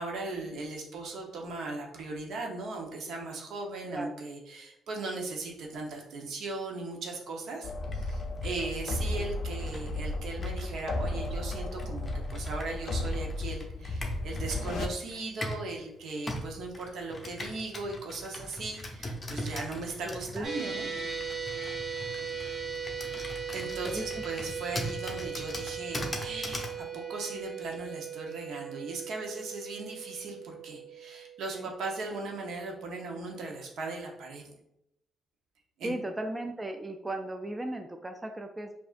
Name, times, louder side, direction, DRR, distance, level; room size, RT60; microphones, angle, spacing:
voice 1, 0.0-20.9 23.5-34.4 35.8-35.9, right 3 dB, 70° right, 1 dB, 0.8 m, -38 dB
sound 1, 7.6-14.9, left 2 dB, 65° left, 0.4 m, -34 dB
Computer keyboard, 7.8-15.7 16.3-26.8, left 1 dB, 25° left, 0.7 m, -41 dB
voice 2, 19.7-20.5 23.8-24.0 31.5-31.7 35.8-38.7, right 1 dB, 20° right, 5 dB, 0.3 m, -36 dB
sound 2, 20.4-32.8, right 6 dB, 55° right, 1.2 m, -39 dB
4.9 x 2.6 x 2.5 m, 0.80 s
cardioid pair, 90°, 0 cm